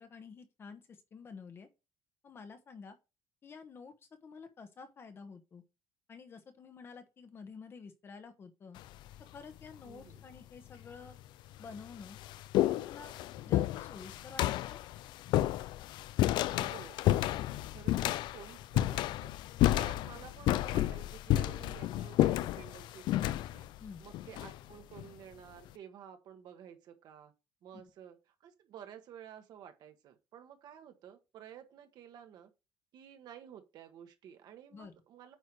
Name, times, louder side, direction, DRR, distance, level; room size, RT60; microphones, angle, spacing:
voice 1, 0.0-1.7 2.2-3.0 3.4-3.9 4.2-5.6 6.1-8.8 9.3-11.2 11.6-12.2 12.6-13.2 13.4-14.4 14.7-14.8 23.8-24.0 27.7-27.8 34.7-34.9, left 5 dB, 25° left, 1.1 m, -50 dB
sound 1, 8.8-9.2 10.1-10.2 11.1-11.2 11.6-25.1, left 14 dB, 60° left, 0.4 m, -31 dB
voice 2, 9.8-10.2 16.5-17.0 17.7-19.3 19.7-23.7 24.0-27.3 27.6-28.2 28.4-32.5 32.9-35.4, right 9 dB, 50° right, 1.4 m, -52 dB
9.1 x 4.6 x 4.6 m
cardioid pair, 175°, 9 cm